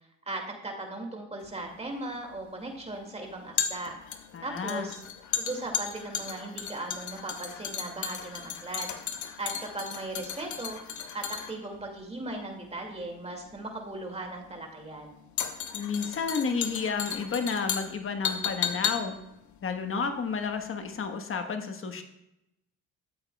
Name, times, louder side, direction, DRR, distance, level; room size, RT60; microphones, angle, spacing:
voice 1, 0.3-3.9 4.4-5.0 5.4-8.9 9.4-10.8 11.1-15.2, right 2 dB, 20° right, 2 dB, 2.3 m, -38 dB
sound 1, 1.4-20.7 21.0-21.1, left 8 dB, 75° left, 1.0 m, -35 dB
voice 2, 4.3-4.9 15.7-19.2 19.6-22.0, left 5 dB, 45° left, 6 dB, 1.3 m, -31 dB
13.5 x 8.1 x 2.3 m, 0.84 s
cardioid pair, 90°, 30 cm